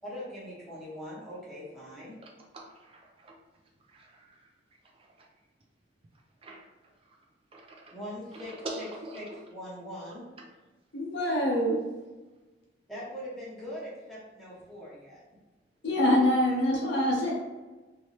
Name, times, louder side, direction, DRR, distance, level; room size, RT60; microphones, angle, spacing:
voice 1, 0.0-2.2 7.9-8.9 9.1-10.3 12.9-15.2, equal, ahead, -9 dB, 0.8 m, -41 dB
voice 2, 2.2-3.3 3.9-4.4 4.9-5.3 6.4-6.6 7.5-7.9 8.3-9.2, right 1 dB, 30° right, 0 dB, 0.4 m, -44 dB
voice 3, 10.9-11.8 15.8-17.3, left 1 dB, 65° left, -4 dB, 0.7 m, -25 dB
3.0 x 2.8 x 3.1 m, 1.2 s
head